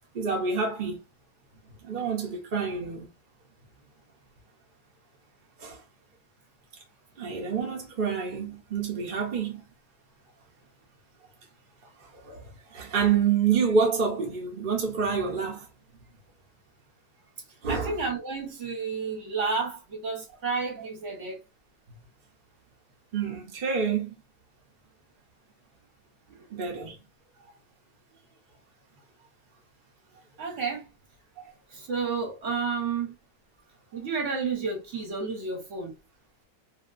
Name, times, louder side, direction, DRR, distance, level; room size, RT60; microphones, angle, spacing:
voice 1, 0.1-1.0 1.8-3.1 5.6-5.8 7.2-9.6 12.2-15.6 17.6-17.9 23.1-24.1 26.5-27.0, right 6 dB, 70° right, 0.4 m, -27 dB
voice 2, 17.7-21.4 26.3-26.6 30.4-30.9 31.7-33.2 33.9-36.0, right 4 dB, 50° right, 0.9 m, -31 dB
2.8 x 2.5 x 2.4 m
omnidirectional pair, 2.1 m